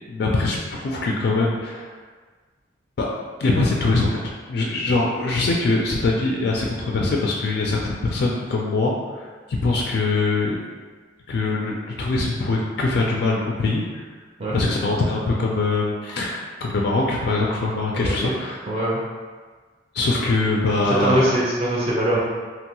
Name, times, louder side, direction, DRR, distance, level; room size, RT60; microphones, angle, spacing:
voice 1, 0.1-1.9 3.0-3.1 3.4-4.2 4.5-9.3 9.6-10.6 11.3-14.1 14.5-18.6 19.9-21.3, left 3 dB, 60° left, -2 dB, 0.3 m, -22 dB
voice 2, 18.7-19.0 20.9-22.2, right 1 dB, 35° right, -7 dB, 0.5 m, -22 dB
3.0 x 2.2 x 2.9 m, 1.4 s
head